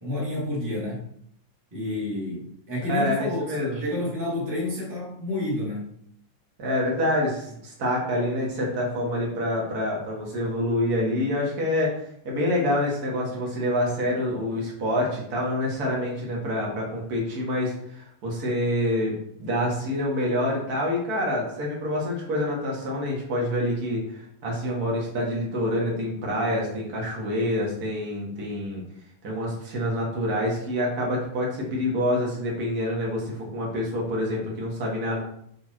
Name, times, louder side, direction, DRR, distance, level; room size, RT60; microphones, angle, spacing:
voice 1, 0.0-1.1 1.7-5.9, left 2 dB, 5° right, -6 dB, 1.5 m, -29 dB
voice 2, 2.9-3.8 6.6-11.9 12.2-19.1 19.4-28.8 29.2-35.2, left 1 dB, 40° right, -2 dB, 1.4 m, -27 dB
5.3 x 5.1 x 4.6 m, 0.71 s
omnidirectional pair, 4.2 m